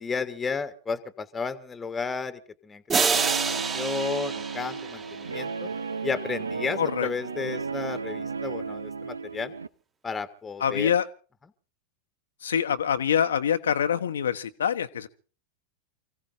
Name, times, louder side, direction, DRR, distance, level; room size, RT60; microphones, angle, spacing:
voice 1, 0.0-5.7 6.0-9.5 10.0-10.9, left 5 dB, 15° left, 1.4 m, -33 dB
sound 1, 2.9-5.8, right 5 dB, 25° right, 1.9 m, -28 dB
Guitar, 3.1-9.7, right 5 dB, 75° right, 0.7 m, -34 dB
voice 2, 6.8-7.1 10.6-11.1 12.4-15.1, left 8 dB, 65° left, 1.0 m, -25 dB
29.0 x 16.0 x 2.7 m
figure-of-eight pair, 90°, 0 cm